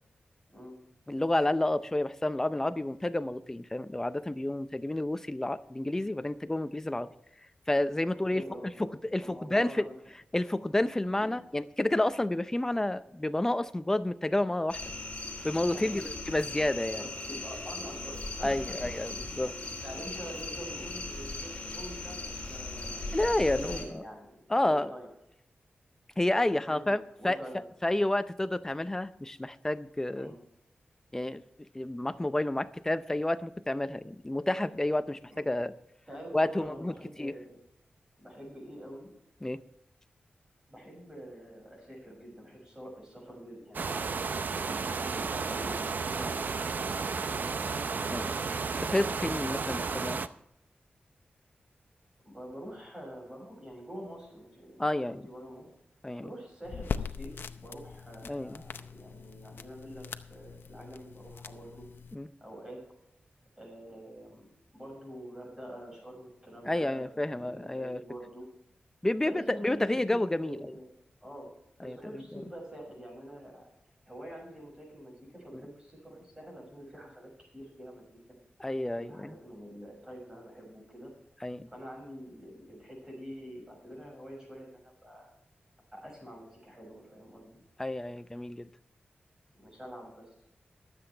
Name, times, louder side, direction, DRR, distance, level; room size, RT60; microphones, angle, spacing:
voice 1, 1.1-7.1 7.7-8.4 9.0-9.8 10.3-14.8 15.4-16.0 16.3-17.0 18.4-19.5 23.1-24.0 24.5-24.9 26.2-27.4 27.8-30.3 31.1-31.4 31.7-35.7 36.3-36.9 37.2-37.3 39.4-39.6 46.2-46.3 48.1-48.3 48.8-50.2 54.8-55.3 56.0-56.2 58.2-58.6 62.1-62.3 66.6-68.0 69.0-70.7 71.8-72.4 78.6-79.3 81.4-81.7 87.8-88.7, left 1 dB, 15° left, 12 dB, 0.5 m, -30 dB
voice 2, 8.3-8.9 9.2-9.9 11.2-11.4 15.7-16.1 17.0-18.8 19.8-23.2 23.5-25.1 26.4-26.9 27.2-27.6 30.1-30.3 35.3-35.4 36.1-37.6 38.2-39.1 40.7-46.6 47.1-47.7 52.3-55.7 56.2-61.9 62.4-62.8 63.6-64.4 64.7-68.5 69.2-69.8 70.4-70.9 71.2-71.5 71.8-73.7 74.1-78.0 79.0-81.1 81.7-85.3 85.9-87.6 89.6-90.3, equal, 15° right, -2 dB, 6.1 m, -46 dB
sound 1, 14.7-23.8, left 2 dB, 30° left, 3.5 m, -39 dB
sound 2, 43.7-50.3, right 4 dB, 55° right, 0.6 m, -33 dB
sound 3, 56.6-62.1, left 6 dB, 80° left, 0.6 m, -41 dB
23.0 x 7.9 x 3.3 m, 0.79 s
wide cardioid pair, 140°, 4 cm